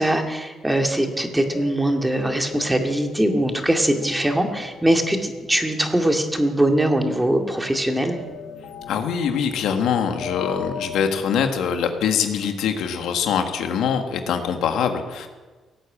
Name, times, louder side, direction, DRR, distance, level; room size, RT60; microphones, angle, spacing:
voice 1, 0.0-8.2, right 1 dB, 10° right, 4 dB, 2.2 m, -21 dB
sound 1, 1.5-11.1, left 6 dB, 65° left, 2.8 m, -38 dB
voice 2, 8.9-15.3, left 7 dB, 85° left, 6 dB, 1.6 m, -23 dB
17.5 x 8.9 x 8.7 m, 1.3 s
cardioid pair, 90°, 0 cm